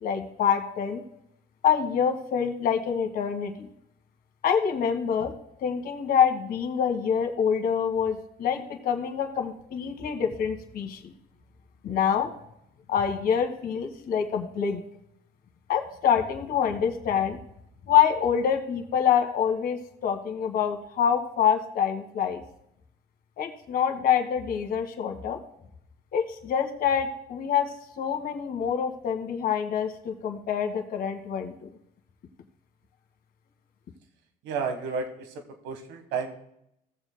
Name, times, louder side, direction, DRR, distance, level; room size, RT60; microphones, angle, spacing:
voice 1, 0.0-1.0 1.6-3.7 4.4-5.3 5.6-11.1 11.8-12.3 12.9-14.8 15.7-17.4 17.9-22.4 23.4-25.4 26.1-27.7 28.0-31.7, left 8 dB, 60° left, 5 dB, 1.5 m, -26 dB
voice 2, 34.4-36.4, right 5 dB, 85° right, 6 dB, 1.4 m, -32 dB
17.0 x 7.2 x 2.2 m, 0.77 s
cardioid pair, 110°, 17 cm